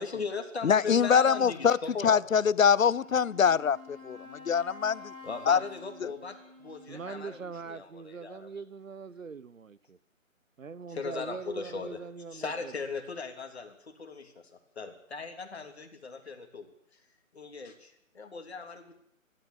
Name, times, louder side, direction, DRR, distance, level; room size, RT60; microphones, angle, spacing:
voice 1, 0.0-2.2 5.2-8.5 10.9-12.0 12.3-16.7 17.3-18.9, left 4 dB, 50° left, 3.2 m, -38 dB
voice 2, 0.6-1.8 2.0-5.1 5.5-5.6 6.0-6.1, left 7 dB, 75° left, 0.7 m, -24 dB
Wind instrument woodwind instrument, 2.8-7.7, left 3 dB, 20° right, 3.8 m, -49 dB
voice 3, 6.9-10.0 10.6-12.7, right 5 dB, 70° right, 1.2 m, -42 dB
29.5 x 12.5 x 8.3 m
hypercardioid pair, 170°, 41 cm